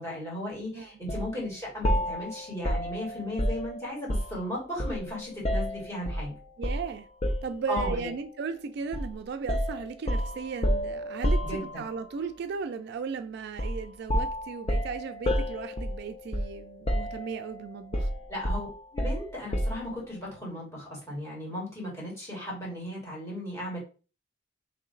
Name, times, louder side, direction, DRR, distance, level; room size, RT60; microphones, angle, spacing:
voice 1, 0.0-6.3 7.7-8.1 11.4-11.8 18.3-18.7 18.9-23.8, left 1 dB, 15° left, 1.8 m, -36 dB
sound 1, 1.1-1.3 1.8-4.4 4.8-6.3 6.6-6.9 7.2-8.1 8.9-9.1 9.5-12.0 13.6-13.8 14.1-16.6 16.9-17.5 17.9-19.9, equal, 30° left, 0.6 m, -29 dB
voice 2, 6.6-7.1 7.4-11.4 11.8-18.1, right 5 dB, 55° right, 0.3 m, -36 dB
3.2 x 2.9 x 3.8 m
head